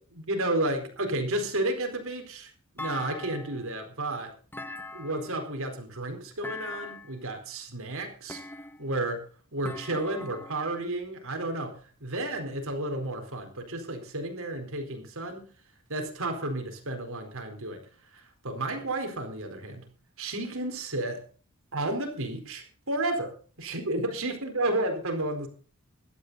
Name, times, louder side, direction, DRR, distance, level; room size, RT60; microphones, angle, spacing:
voice 1, 0.1-4.3 4.9-8.4 8.8-9.2 9.5-15.5 15.9-17.8 18.1-19.8 20.2-21.2 21.7-25.5, right 1 dB, 65° right, 5 dB, 4.3 m, -32 dB
Thump thud, 2.8-3.7 4.5-5.4 6.4-7.2 8.3-9.0 9.7-10.7, left 2 dB, 10° left, 1.1 m, -41 dB
16.5 x 12.5 x 4.1 m, 0.39 s
head